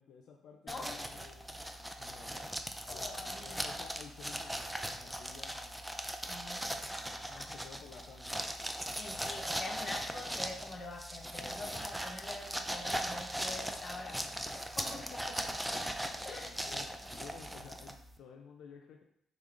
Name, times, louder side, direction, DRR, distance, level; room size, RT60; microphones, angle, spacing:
voice 1, 0.0-1.5 2.0-2.5 2.9-5.9 7.3-8.4 14.9-15.8 16.3-19.0, left 6 dB, 75° left, 3 dB, 0.4 m, -53 dB
sound 1, 0.7-18.2, equal, 5° right, 0.4 m, -39 dB
voice 2, 2.9-3.8 6.3-6.7 7.4-7.5 9.0-15.0 16.2-16.5, left 3 dB, 40° left, 2 dB, 0.8 m, -45 dB
5.3 x 3.7 x 2.5 m, 0.75 s
cardioid pair, 90°, 0 cm